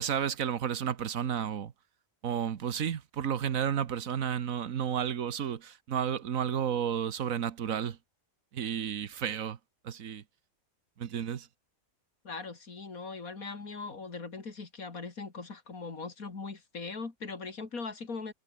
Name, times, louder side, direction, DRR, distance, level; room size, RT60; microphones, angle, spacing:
voice 1, 0.0-1.7 2.2-8.0 8.5-9.6 9.8-10.2 11.0-11.5, right 8 dB, 75° right, 1.5 m, -32 dB
voice 2, 12.2-18.3, left 4 dB, 85° left, 3.3 m, -40 dB
omnidirectional pair, 1.4 m